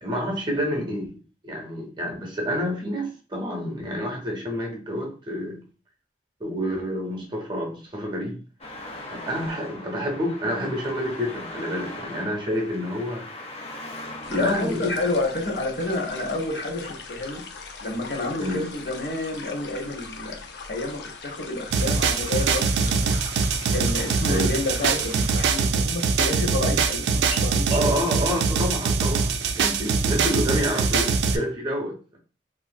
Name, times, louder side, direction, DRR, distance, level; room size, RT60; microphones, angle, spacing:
voice 1, 0.0-5.6 6.4-8.4 9.1-13.3 14.3-14.9 18.4-18.6 24.3-24.5 27.7-32.2, equal, 25° right, 0.6 m, -28 dB
Traffic noise roadway noise, 8.6-15.2, left 2 dB, 35° left, 0.5 m, -39 dB
sound 1, 14.2-25.7, left 4 dB, 85° left, 0.5 m, -40 dB
voice 2, 14.3-17.4 17.8-20.4 20.7-23.2 23.7-27.8, left 2 dB, 65° left, 0.8 m, -29 dB
sound 2, 21.7-31.4, right 5 dB, 80° right, 0.3 m, -23 dB
3.5 x 2.4 x 2.3 m
head